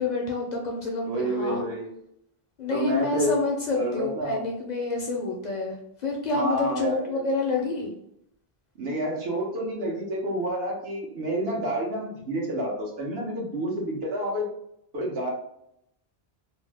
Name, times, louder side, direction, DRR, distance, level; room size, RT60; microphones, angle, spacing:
voice 1, 0.0-1.6 2.6-7.9, left 3 dB, 55° left, -1 dB, 0.5 m, -28 dB
voice 2, 1.1-1.9 2.7-3.4 3.7-4.4 6.3-7.2 8.8-14.5 14.9-15.3, equal, 75° right, -2 dB, 1.0 m, -29 dB
2.6 x 2.0 x 3.3 m, 0.76 s
omnidirectional pair, 1.0 m